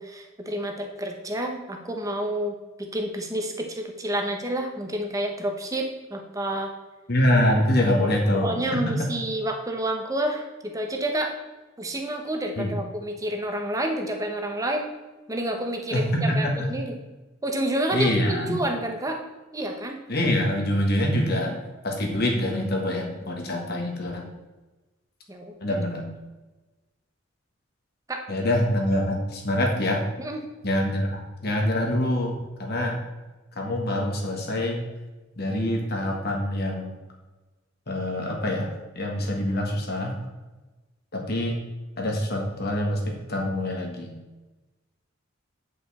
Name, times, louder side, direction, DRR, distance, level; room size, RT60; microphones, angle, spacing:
voice 1, 0.0-6.7 8.0-8.1 8.4-11.3 11.8-14.9 15.3-16.9 17.4-19.2 19.5-20.0 25.3-25.8 28.1-28.2 30.2-30.4, right 1 dB, 15° right, 3 dB, 1.0 m, -29 dB
voice 2, 7.1-8.9 12.6-12.8 15.9-16.7 17.9-18.6 20.1-24.2 25.6-26.0 28.3-30.0 30.6-33.0 33.5-34.8 35.4-36.9 37.9-38.7 39.0-40.1 41.1-41.6 42.0-43.0 43.3-44.1, left 1 dB, 50° left, 0 dB, 1.6 m, -25 dB
9.2 x 5.5 x 4.2 m, 1.1 s
head